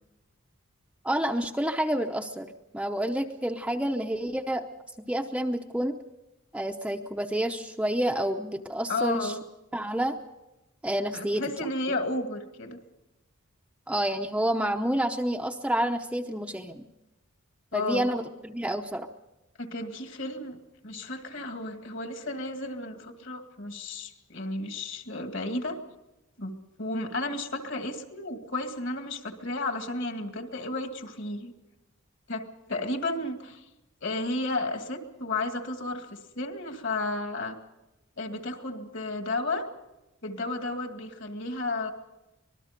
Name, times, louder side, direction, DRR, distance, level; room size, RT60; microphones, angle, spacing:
voice 1, 1.0-2.5 2.7-4.7 5.1-6.0 6.5-9.3 9.7-10.2 10.8-11.4 13.9-16.9 17.7-19.1, right 1 dB, 5° right, 4 dB, 0.7 m, -29 dB
voice 2, 8.9-9.4 11.1-12.8 17.7-18.1 19.6-20.6 20.8-25.8 26.4-31.5 32.3-33.7 34.0-37.6 38.2-39.7 40.2-41.9, left 2 dB, 55° left, 6 dB, 2.2 m, -33 dB
25.5 x 20.0 x 5.2 m, 0.97 s
head